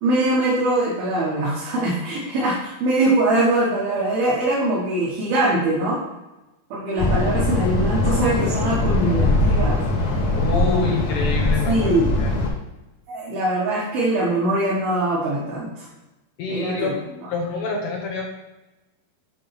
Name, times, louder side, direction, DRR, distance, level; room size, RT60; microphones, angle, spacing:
voice 1, 0.0-6.0 6.7-10.2 10.5-11.0 11.7-12.1 13.1-15.9 16.5-16.9 17.2-17.3, right 1 dB, 65° right, -6 dB, 3.2 m, -22 dB
sound 1, 7.0-12.5, left 2 dB, 50° left, 2.8 m, -21 dB
voice 2, 10.3-12.4 16.4-16.9 17.3-18.2, left 5 dB, 80° left, -1 dB, 1.8 m, -27 dB
10.0 x 3.6 x 5.9 m, 1.0 s
omnidirectional pair, 5.2 m